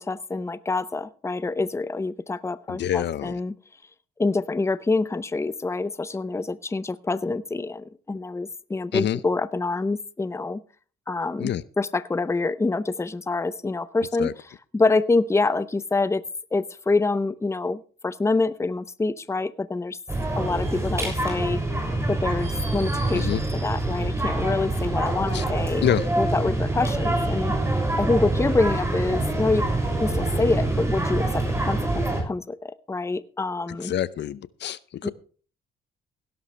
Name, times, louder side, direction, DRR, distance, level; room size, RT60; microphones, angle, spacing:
voice 1, 0.0-3.5 4.2-10.6 11.1-11.5 11.8-14.3 14.7-16.2 16.5-20.0 20.3-21.6 22.1-25.8 26.2-27.5 28.0-29.7 30.0-33.9 35.0-35.1, left 3 dB, 15° left, 16 dB, 0.7 m, -26 dB
voice 2, 2.7-3.4 8.9-9.2 11.4-11.6 14.2-14.3 23.1-23.4 25.3-25.4 25.8-26.0 33.8-35.1, left 10 dB, 60° left, 18 dB, 0.7 m, -26 dB
sound 1, 20.1-32.2, right 2 dB, 15° right, 6.4 m, -25 dB
17.0 x 11.5 x 3.3 m, 0.39 s
cardioid pair, 90°, 20 cm